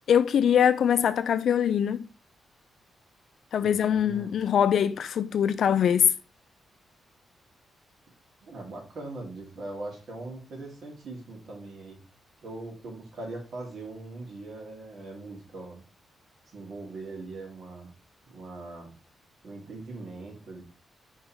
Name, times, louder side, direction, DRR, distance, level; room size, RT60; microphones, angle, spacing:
voice 1, 0.1-2.1 3.5-6.1, left 8 dB, 70° left, 0.4 m, -23 dB
voice 2, 3.6-4.3 8.4-12.0 12.4-15.8 16.5-17.9 18.2-18.9 19.4-20.6, right 2 dB, 60° right, 2.9 m, -41 dB
5.5 x 4.4 x 4.4 m
cardioid pair, 120°, 0 cm